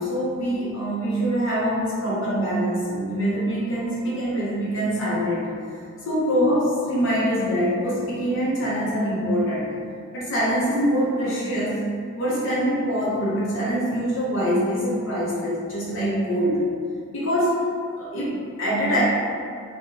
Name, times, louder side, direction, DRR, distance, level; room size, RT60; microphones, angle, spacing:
voice 1, 0.0-5.5 6.0-9.7 10.1-11.8 12.2-16.7 17.1-17.7 18.0-19.0, equal, 60° left, -8 dB, 0.8 m, -24 dB
2.3 x 2.3 x 3.1 m, 2.2 s
head